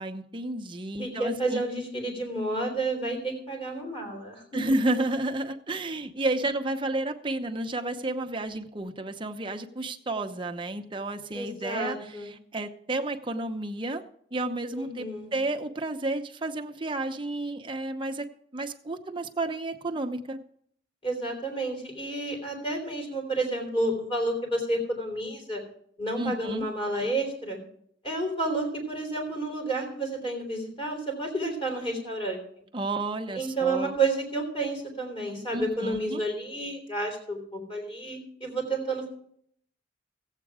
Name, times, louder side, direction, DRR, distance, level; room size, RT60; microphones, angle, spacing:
voice 1, 0.0-1.6 4.5-14.0 14.3-18.3 18.5-20.4 26.2-26.7 32.7-33.9 35.5-36.2, right 2 dB, 25° right, 5 dB, 0.8 m, -31 dB
voice 2, 1.0-4.6 11.3-12.3 14.7-15.3 21.0-25.6 26.0-27.6 28.0-32.6 33.3-39.1, right 2 dB, 25° left, 1 dB, 3.6 m, -30 dB
15.0 x 8.3 x 4.8 m, 0.67 s
head